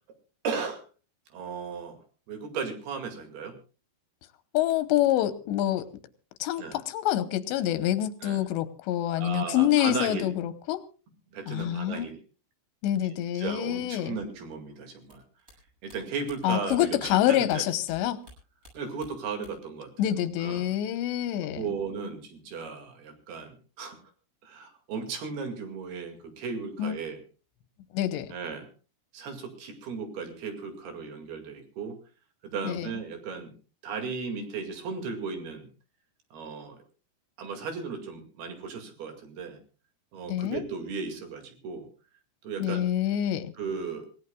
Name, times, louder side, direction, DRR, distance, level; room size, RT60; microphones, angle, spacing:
voice 1, 0.4-0.8 1.3-2.0 2.3-3.6 6.6-6.8 8.2-8.4 9.2-10.3 11.3-12.2 13.1-15.2 15.8-17.6 18.7-20.1 20.4-20.7 21.4-24.0 24.4-27.2 28.3-28.7 29.1-32.0 32.4-33.5 33.8-35.7 36.3-36.8 37.4-39.6 40.1-41.9 42.4-42.9 43.6-44.1, right 5 dB, 65° right, 5 dB, 4.1 m, -36 dB
voice 2, 4.5-5.9 6.4-10.9 11.5-12.1 12.8-14.2 16.4-18.2 20.0-21.6 26.8-26.9 27.9-28.3 32.6-32.9 40.3-40.6 42.6-43.5, left 12 dB, 85° left, 12 dB, 3.2 m, -26 dB
sound 1, 15.0-18.0 18.2-19.8 20.0-20.8, equal, 15° right, 7.9 m, -53 dB
26.5 x 17.0 x 2.3 m, 0.36 s
omnidirectional pair, 4.9 m